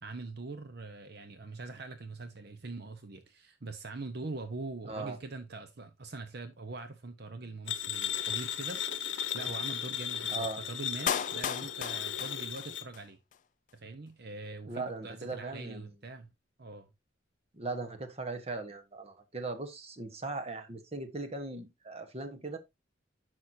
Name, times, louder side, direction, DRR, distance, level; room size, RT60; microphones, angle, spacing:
voice 1, 0.0-13.2 13.7-16.3 16.6-16.9, right 3 dB, 55° right, 0.8 m, -43 dB
sound 1, 7.7-12.9, left 9 dB, 70° left, 0.8 m, -36 dB
voice 2, 10.3-10.6 14.7-15.9 17.5-22.6, right 3 dB, 35° right, 1.2 m, -39 dB
Clapping, 11.1-13.1 13.3-13.4, left 8 dB, 40° left, 0.4 m, -35 dB
10.5 x 6.3 x 2.7 m
head